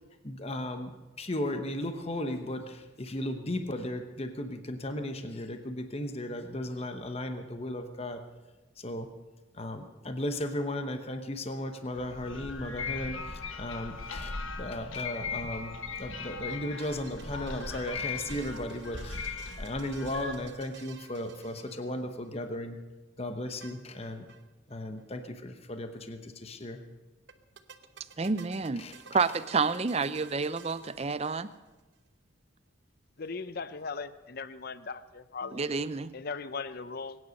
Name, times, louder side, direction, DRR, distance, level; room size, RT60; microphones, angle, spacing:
voice 1, 0.2-8.2 8.8-9.1 9.5-22.8 23.2-24.3 24.7-26.8 28.8-29.0, left 1 dB, 30° left, 7 dB, 1.0 m, -36 dB
sound 1, 11.9-20.4, left 4 dB, 75° left, 1.5 m, -38 dB
sound 2, 16.5-22.3 23.6-24.5 24.7-24.8 25.0-25.1 27.3-31.8, right 6 dB, 60° right, 1.0 m, -53 dB
voice 2, 28.2-28.8 29.1-31.5 35.5-36.1, right 4 dB, 30° right, 15 dB, 0.5 m, -29 dB
voice 3, 33.2-35.7 36.1-37.2, left 4 dB, 50° left, 14 dB, 0.6 m, -38 dB
22.5 x 9.7 x 6.5 m, 1.2 s
head